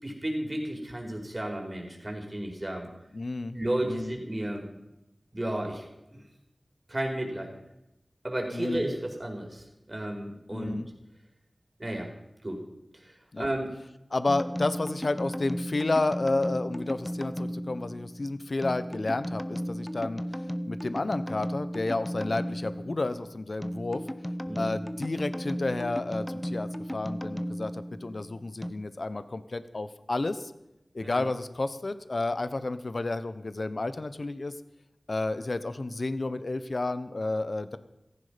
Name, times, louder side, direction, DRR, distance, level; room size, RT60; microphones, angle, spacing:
voice 1, 0.0-2.9 3.5-4.7 5.3-6.2 6.9-7.6 8.2-10.8 11.8-12.1 12.4-12.6 12.9-13.7 24.5-24.8 31.0-31.2, right 1 dB, 30° right, 1 dB, 4.8 m, -33 dB
voice 2, 3.1-3.6 3.8-4.1 8.5-8.9 10.5-10.9 13.3-13.5 14.1-20.2 20.7-24.0 24.6-30.5 30.9-34.5 35.1-37.8, left 2 dB, 60° left, 12 dB, 1.0 m, -31 dB
sound 1, 14.3-28.7, equal, 10° left, 0.9 m, -35 dB
17.0 x 14.5 x 5.2 m, 0.90 s
wide cardioid pair, 50°, 0 cm